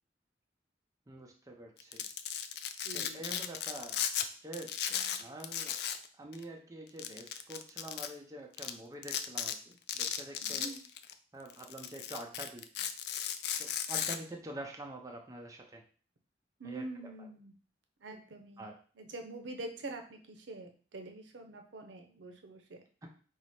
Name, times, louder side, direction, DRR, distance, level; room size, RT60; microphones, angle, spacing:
voice 1, 1.1-2.1 2.9-4.0 4.4-5.8 6.1-10.7 11.3-12.9 13.6-15.8 16.6-16.9 17.2-17.3 18.6-18.8 23.0-23.1, right 1 dB, 20° right, 1 dB, 0.5 m, -46 dB
Domestic sounds home sounds, 1.8-4.3 4.5-6.1 6.3-6.4 7.0-8.1 8.6-8.7 9.0-9.5 9.9-11.1 11.5-14.2, left 9 dB, 60° left, 0.3 m, -36 dB
voice 2, 2.8-3.4 4.9-5.2 10.4-10.8 16.6-17.5 18.0-18.7 19.0-22.8, right 2 dB, 85° right, 4 dB, 0.6 m, -45 dB
4.7 x 2.0 x 4.1 m, 0.40 s
head